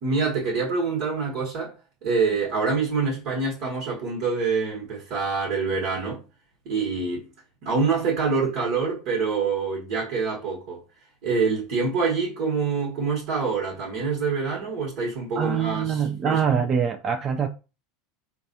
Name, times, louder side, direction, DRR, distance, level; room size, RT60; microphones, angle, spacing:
voice 1, 0.0-1.7 2.0-6.2 6.6-7.2 7.6-10.8 11.2-16.7, right 4 dB, 60° right, 1.3 m, -26 dB
voice 2, 15.4-17.5, right 7 dB, 35° right, 0.4 m, -24 dB
4.0 x 2.3 x 2.6 m
hypercardioid pair, 90°, 0 cm